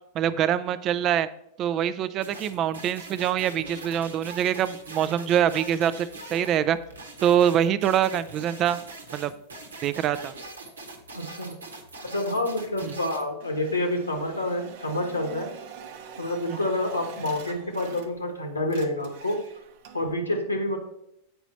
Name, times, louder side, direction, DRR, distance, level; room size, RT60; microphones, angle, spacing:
voice 1, 0.1-1.3 1.6-6.8 7.2-8.8 9.1-9.3 9.8-10.3 12.8-12.9, right 10 dB, 35° right, 15 dB, 0.4 m, -24 dB
sound 1, 2.2-13.3, right 3 dB, 70° right, 1.1 m, -42 dB
voice 2, 11.1-11.6 12.0-15.5 16.2-19.4 19.9-20.8, left 1 dB, 80° left, 4 dB, 1.1 m, -28 dB
sound 2, 13.4-18.3 18.6-20.1, right 8 dB, 50° right, 0.8 m, -45 dB
8.0 x 5.0 x 4.2 m, 0.81 s
figure-of-eight pair, 90°, 0 cm